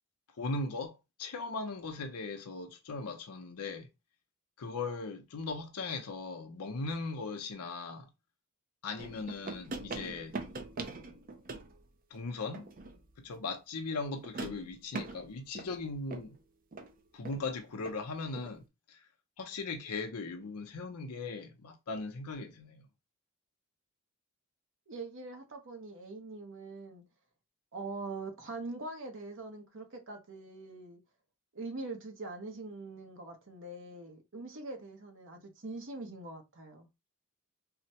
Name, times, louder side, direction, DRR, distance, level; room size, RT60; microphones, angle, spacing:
voice 1, 0.4-3.9 4.6-8.1 8.8-10.4 12.1-12.7 13.2-16.4 17.1-19.1 19.4-22.9, left 3 dB, 85° left, 0.6 m, -39 dB
sound 1, 9.0-11.8 12.5-13.2 14.2-16.4 16.7-16.9 17.2-17.5 17.8-18.0 18.3-18.6, right 3 dB, 40° right, 0.5 m, -42 dB
voice 2, 24.9-27.0 27.7-31.0 31.5-36.9, right 3 dB, 60° right, 0.9 m, -43 dB
3.9 x 2.1 x 2.8 m
head